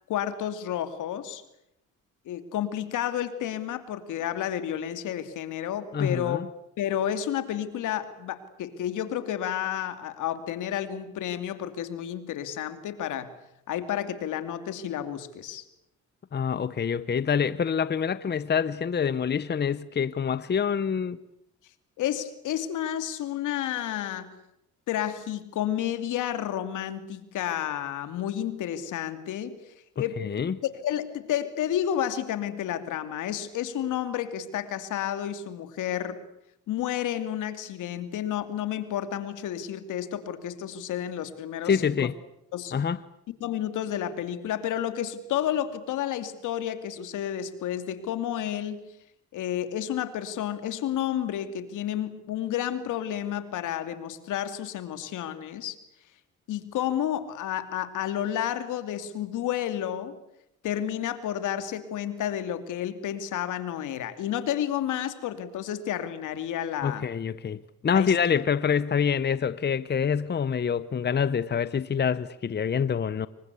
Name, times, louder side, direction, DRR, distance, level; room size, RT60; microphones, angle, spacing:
voice 1, 0.1-1.4 2.3-6.4 6.8-13.3 13.7-15.6 22.0-24.3 24.9-29.6 30.0-30.3 30.6-36.2 36.7-42.0 42.5-42.7 43.4-48.8 49.3-55.8 56.5-60.2 60.6-67.1 67.9-68.1, left 10 dB, 85° left, 2.7 m, -31 dB
voice 2, 5.9-6.5 16.3-21.2 30.2-30.6 41.6-42.1 42.7-43.0 66.8-73.3, left 7 dB, 35° left, 0.9 m, -26 dB
27.0 x 23.5 x 8.4 m
cardioid pair, 90°, 30 cm